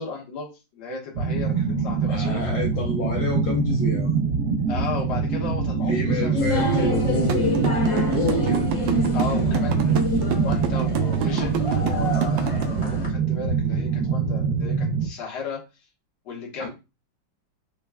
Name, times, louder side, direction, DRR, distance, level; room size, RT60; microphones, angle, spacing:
voice 1, 0.0-2.4 4.7-6.5 9.1-15.6 16.2-16.7, left 4 dB, 60° left, -3 dB, 1.7 m, -35 dB
sound 1, 1.1-15.1, right 5 dB, 65° right, 0.8 m, -24 dB
voice 2, 2.1-4.1 5.9-8.7 16.6-16.7, left 4 dB, 80° left, -1 dB, 1.5 m, -28 dB
sound 2, 6.3-13.1, equal, 45° left, 0.4 m, -27 dB
sound 3, 7.3-12.6, right 7 dB, 80° right, 1.3 m, -28 dB
5.1 x 2.2 x 2.2 m, 0.27 s
omnidirectional pair, 2.0 m